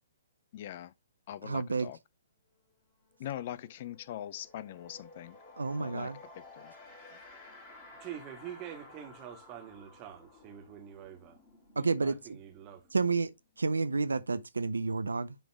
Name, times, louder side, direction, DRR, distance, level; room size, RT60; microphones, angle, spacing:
voice 1, 0.5-0.9 1.3-2.0 3.2-5.4 5.8-6.1 6.4-6.7, left 12 dB, 45° left, 0.4 m, -42 dB
voice 2, 1.4-1.9 5.6-6.2 11.8-12.4 12.9-13.3 13.6-15.4, right 4 dB, 75° right, 0.5 m, -30 dB
sound 1, 2.6-2.7 3.0-13.6, left 2 dB, 25° left, 2.8 m, -54 dB
voice 3, 8.0-11.4 11.7-12.8, right 10 dB, 25° right, 1.7 m, -46 dB
10.0 x 3.4 x 3.4 m
figure-of-eight pair, 125°, 0 cm